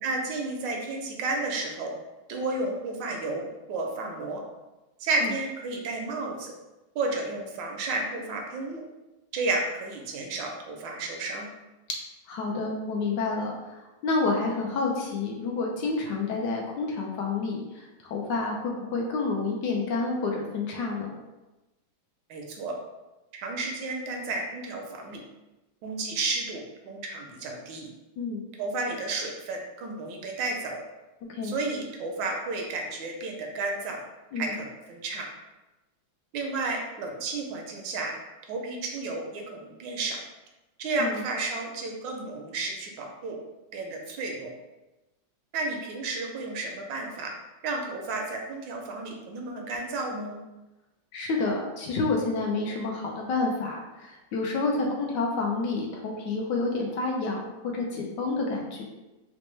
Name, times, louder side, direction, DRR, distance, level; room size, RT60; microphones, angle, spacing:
voice 1, 0.0-1.9 2.3-4.4 5.0-6.5 6.9-8.8 9.3-11.5 22.3-22.7 23.3-25.2 25.8-27.9 28.6-30.8 31.4-34.0 34.4-35.3 36.3-38.1 38.5-40.2 40.8-43.4 43.7-44.5 45.5-47.3 47.6-50.4 54.8-54.9, right 3 dB, 75° right, 2 dB, 1.2 m, -32 dB
voice 2, 12.3-21.1 28.2-28.4 31.3-31.5 34.3-34.5 41.0-41.2 51.1-58.8, left 3 dB, 75° left, -1 dB, 1.1 m, -29 dB
4.3 x 2.1 x 3.1 m, 1.0 s
omnidirectional pair, 2.1 m